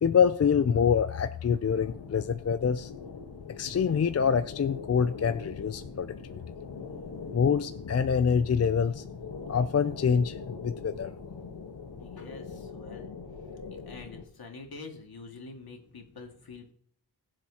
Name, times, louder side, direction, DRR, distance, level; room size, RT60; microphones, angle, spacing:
voice 1, 0.0-2.9 3.6-6.4 7.3-9.0 9.5-11.1, left 7 dB, 40° left, 10 dB, 0.4 m, -26 dB
sound 1, 1.7-14.2, left 5 dB, 90° left, 1.4 m, -42 dB
voice 2, 12.0-13.1 13.5-13.6 13.9-16.7, left 3 dB, 65° left, 2 dB, 2.1 m, -46 dB
21.0 x 7.3 x 2.9 m, 0.62 s
wide cardioid pair, 125°, 40 cm